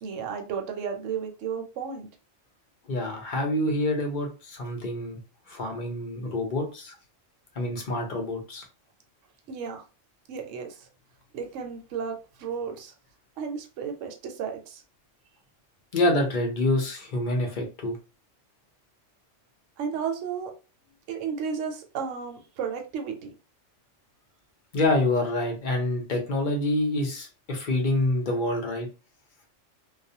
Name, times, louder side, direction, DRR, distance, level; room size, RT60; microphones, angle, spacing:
voice 1, 0.0-2.1 9.5-9.8 10.3-10.9 11.3-12.9 13.4-14.8 19.8-20.5 21.1-23.3, right 6 dB, 75° right, 0.9 m, -33 dB
voice 2, 2.9-5.2 5.5-7.0 7.6-8.6 15.9-18.0 24.7-28.9, left 1 dB, 45° left, 0.7 m, -27 dB
2.3 x 2.2 x 2.7 m
omnidirectional pair, 1.3 m